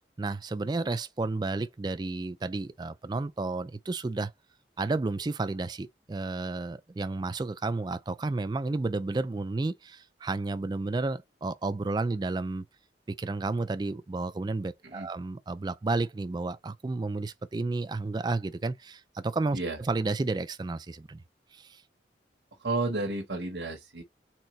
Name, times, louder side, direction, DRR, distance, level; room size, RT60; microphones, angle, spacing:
voice 1, 0.2-4.3 4.8-12.7 13.1-21.2 21.5-21.8, right 3 dB, 25° right, 0.3 m, -32 dB
voice 2, 22.6-24.0, right 2 dB, 80° right, 1.2 m, -32 dB
4.5 x 3.7 x 3.1 m
head